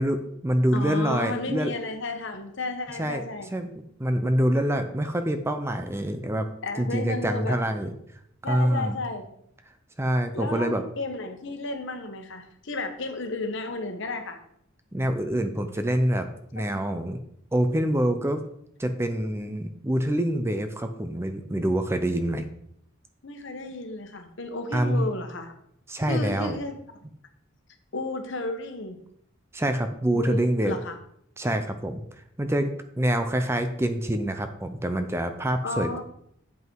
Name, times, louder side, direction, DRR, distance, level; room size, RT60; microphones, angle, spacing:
voice 1, 0.0-1.7 3.0-3.2 3.5-3.7 4.0-6.5 6.8-7.9 8.5-9.0 10.0-10.8 14.9-16.3 16.5-17.2 17.5-18.4 18.8-22.4 24.7-25.1 25.9-26.6 29.5-30.8 31.4-32.0 32.4-32.7 33.0-36.0, right 1 dB, 10° right, 8 dB, 0.5 m, -26 dB
voice 2, 0.7-3.5 6.6-7.6 8.4-9.2 10.3-14.4 16.5-16.7 23.2-25.5 26.1-26.8 27.9-29.0 30.1-31.0 35.6-36.0, left 2 dB, 60° left, 6 dB, 1.2 m, -33 dB
7.9 x 5.4 x 4.6 m, 0.71 s
head